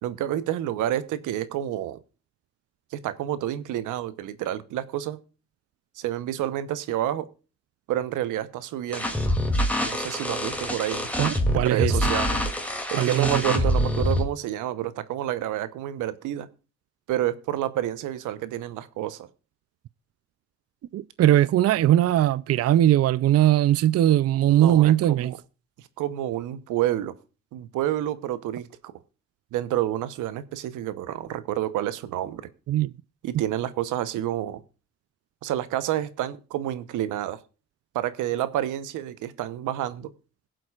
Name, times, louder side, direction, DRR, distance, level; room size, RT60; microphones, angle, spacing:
voice 1, 0.0-2.0 2.9-5.2 6.0-7.3 7.9-9.2 9.8-11.1 11.5-12.4 12.9-16.5 17.1-19.3 24.4-25.4 26.0-27.1 27.5-28.9 29.5-32.5 33.2-34.6 35.4-37.4 37.9-40.1, right 12 dB, 90° right, 1.0 m, -29 dB
sound 1, 8.9-14.2, equal, 5° left, 2.6 m, -25 dB
voice 2, 11.2-11.9 13.0-13.6 20.9-25.3 32.7-32.9, right 12 dB, 55° right, 0.5 m, -20 dB
22.0 x 7.7 x 2.4 m
cardioid pair, 90°, 30 cm